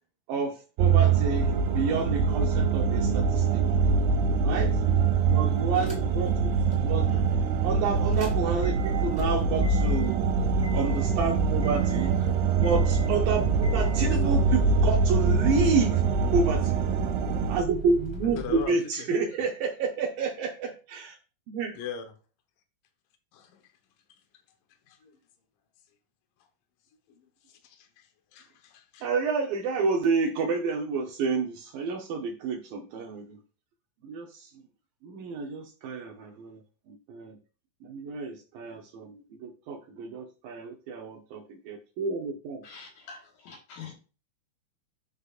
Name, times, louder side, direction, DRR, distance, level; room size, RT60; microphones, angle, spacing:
voice 1, 0.3-3.6 4.4-4.8 5.3-6.5 6.8-7.1 7.6-10.3 10.7-12.3 12.6-16.0 16.3-16.8 17.5-21.2 21.5-21.8 29.0-33.4 34.0-34.5 35.0-36.6 36.9-37.4 37.8-42.6, right 4 dB, 90° right, 1 dB, 1.9 m, -30 dB
sound 1, 0.8-17.6, right 5 dB, 75° right, 2.7 m, -24 dB
sound 2, 5.8-6.3 6.7-6.8 8.0-18.6, equal, ahead, 2.1 m, -35 dB
voice 2, 13.9-14.2 16.6-16.7 18.3-18.8 21.8-22.0 23.3-23.6 24.9-25.2 27.1-29.1, left 7 dB, 85° left, 6 dB, 1.9 m, -40 dB
voice 3, 42.6-43.9, left 6 dB, 65° left, -1 dB, 2.7 m, -45 dB
12.5 x 5.2 x 2.5 m, 0.35 s
omnidirectional pair, 5.4 m